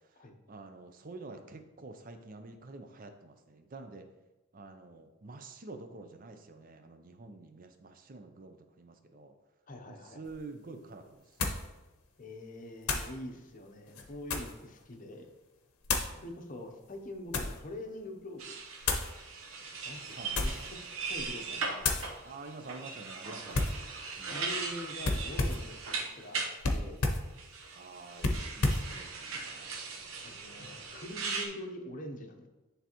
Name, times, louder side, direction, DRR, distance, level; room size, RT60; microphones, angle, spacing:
voice 1, 0.5-4.0 4.5-9.3 9.9-11.2 16.1-16.2 20.1-20.7 22.2-23.8 24.2-24.4 27.7-29.8, right 3 dB, 40° right, 7 dB, 0.5 m, -48 dB
voice 2, 9.7-10.2 12.2-15.3 16.2-18.6 19.8-20.8 21.1-22.2 24.3-26.4 26.7-27.0 30.2-32.5, left 1 dB, 35° left, 4 dB, 0.7 m, -44 dB
sound 1, 10.3-10.4 11.4-11.7 12.8-13.1 13.9-14.6 15.8-16.2 16.9-17.6 18.8-19.1 20.2-20.7 21.1-21.4 21.8-22.1 23.5-23.8 25.0-25.7 26.6-27.3 28.2-28.9, left 3 dB, 85° left, 0.8 m, -31 dB
sound 2, 18.4-26.5 27.4-31.5, right 4 dB, 65° right, 0.9 m, -39 dB
9.9 x 3.4 x 3.0 m, 1.1 s
head